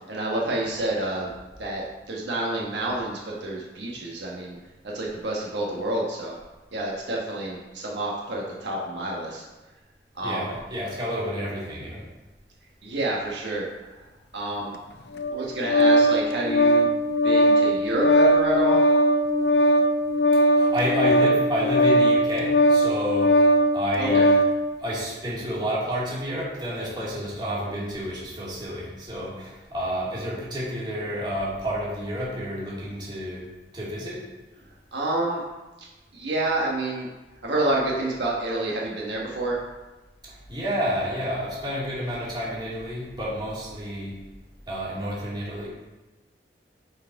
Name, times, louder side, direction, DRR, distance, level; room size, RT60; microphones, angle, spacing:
voice 1, 0.1-1.3 1.6-4.6 4.9-6.4 6.7-9.4 10.2-10.4 12.8-13.6 14.3-14.7 15.3-16.9 17.2-18.8 24.0-24.2 34.9-35.4 36.1-37.1 37.4-39.6, right 1 dB, 80° right, -3 dB, 1.3 m, -28 dB
voice 2, 10.2-12.0 20.5-23.4 23.7-24.4 24.8-33.5 33.7-34.2 40.3-44.2 44.7-45.7, equal, 25° right, -7 dB, 2.3 m, -30 dB
Organ, 15.1-24.6, equal, 65° left, 0.6 m, -19 dB
7.3 x 4.7 x 4.7 m, 1.1 s
head